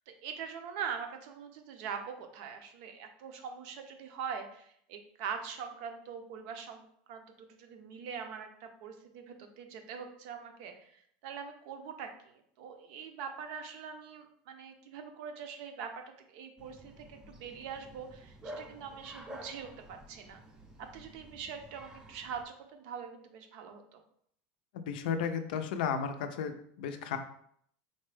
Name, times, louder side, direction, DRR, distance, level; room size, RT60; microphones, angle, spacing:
voice 1, 0.1-15.9 16.3-20.4 20.8-24.0, right 7 dB, 65° right, 6 dB, 0.5 m, -43 dB
Bark, 16.6-22.4, right 1 dB, 15° right, 0.5 m, -50 dB
voice 2, 24.7-27.2, left 7 dB, 85° left, 8 dB, 0.4 m, -34 dB
3.9 x 2.2 x 3.2 m, 0.67 s
supercardioid pair, 145°, 5 cm